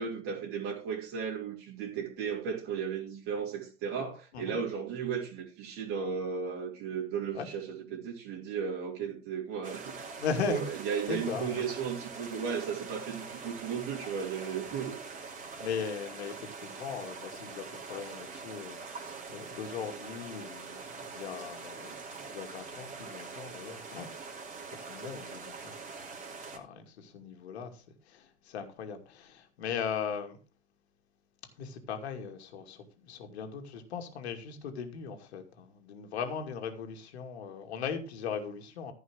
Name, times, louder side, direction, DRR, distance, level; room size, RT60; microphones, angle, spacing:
voice 1, 0.0-15.0, right 6 dB, 35° right, 3.5 m, -35 dB
sound 1, 9.6-26.6, right 4 dB, 20° right, 3.3 m, -44 dB
voice 2, 10.2-10.6 11.1-11.6 14.7-14.8 15.6-22.0 22.3-24.3 24.7-26.0 26.5-30.4 31.6-38.9, left 6 dB, 60° left, 2.4 m, -38 dB
14.5 x 5.5 x 6.2 m
figure-of-eight pair, 90°, 36 cm